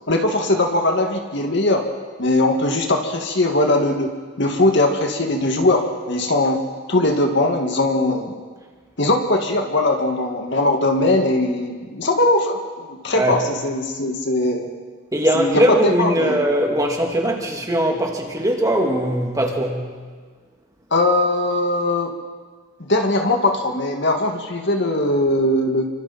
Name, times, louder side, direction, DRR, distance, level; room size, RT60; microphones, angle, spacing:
voice 1, 0.1-1.8 2.2-4.1 4.4-6.6 6.9-8.3 9.0-14.7 15.3-16.4 20.9-22.1 22.8-25.9, left 2 dB, 55° left, 3 dB, 2.2 m, -20 dB
voice 2, 15.1-19.9, right 1 dB, 15° right, 1 dB, 2.5 m, -20 dB
29.5 x 25.0 x 4.4 m, 1.5 s
head